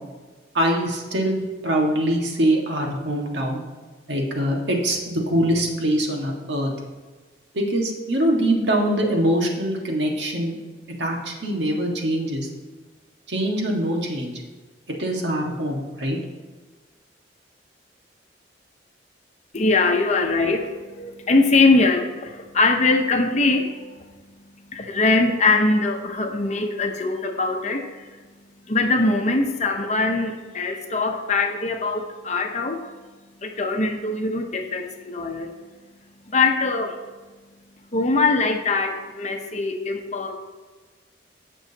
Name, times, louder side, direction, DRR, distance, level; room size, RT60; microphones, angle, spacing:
voice 1, 0.5-3.6 4.1-6.7 7.5-10.6 11.0-12.5 13.3-14.3 15.0-16.2, right 1 dB, 70° right, 0 dB, 1.7 m, -23 dB
voice 2, 19.5-24.2 24.7-28.2 28.7-32.9 33.4-35.5 36.3-37.0 37.9-40.3, left 3 dB, 40° left, 4 dB, 0.9 m, -22 dB
15.5 x 6.3 x 2.9 m, 1.3 s
head